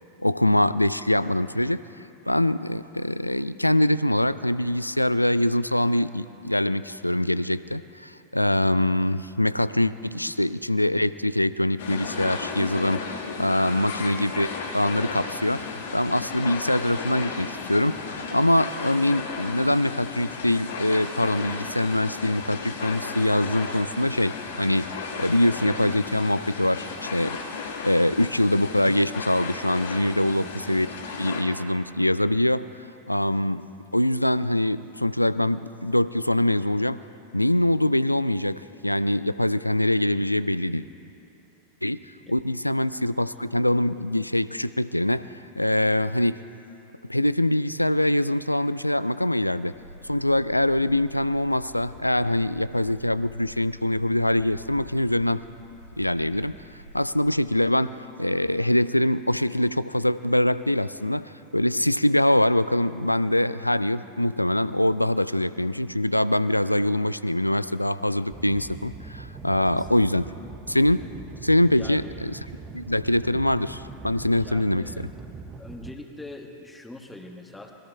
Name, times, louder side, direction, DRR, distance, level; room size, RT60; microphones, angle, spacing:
voice 1, 0.2-1.8 2.3-14.5 14.7-15.6 15.9-27.4 27.8-30.9 31.2-32.7 33.1-33.7 33.9-37.0 37.3-40.9 41.8-42.0 42.3-45.3 45.6-46.4 47.1-49.7 50.0-55.4 56.0-56.5 56.9-70.3 70.7-71.0 71.4-72.4 72.7-75.1, left 1 dB, 85° left, 16 dB, 0.3 m, -23 dB
sound 1, 11.8-31.4, left 5 dB, 60° left, 1.5 m, -34 dB
sound 2, 49.7-57.6, right 1 dB, 85° right, 4.3 m, -47 dB
sound 3, 68.3-75.9, right 4 dB, 20° right, 0.8 m, -42 dB
voice 2, 69.5-70.1 71.7-72.0 74.4-75.1 75.6-77.7, left 2 dB, 10° left, 4 dB, 1.3 m, -43 dB
25.0 x 20.5 x 2.3 m, 2.8 s
figure-of-eight pair, 90°, 0 cm